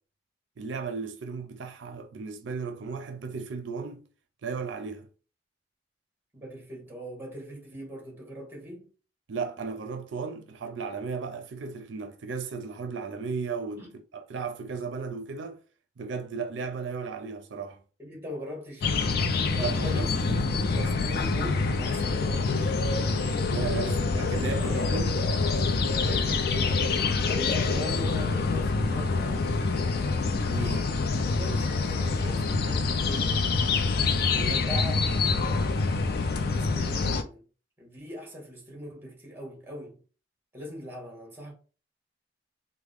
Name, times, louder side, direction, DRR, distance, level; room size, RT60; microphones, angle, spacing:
voice 1, 0.6-4.0 4.4-5.1 9.3-13.8 14.1-15.6 16.0-17.8 19.6-20.5 23.5-25.1 30.5-30.7 34.4-34.6, right 5 dB, 80° right, 0.4 m, -35 dB
voice 2, 6.3-8.9 13.8-13.9 18.0-19.1 19.5-22.9 23.8-25.2 26.0-26.8 27.3-29.9 30.6-33.3 34.3-35.5 36.5-37.5 37.8-40.0 40.5-41.5, equal, 10° right, 1.2 m, -41 dB
sound 1, 18.8-37.2, left 4 dB, 55° left, 0.4 m, -26 dB
3.4 x 2.1 x 3.5 m
head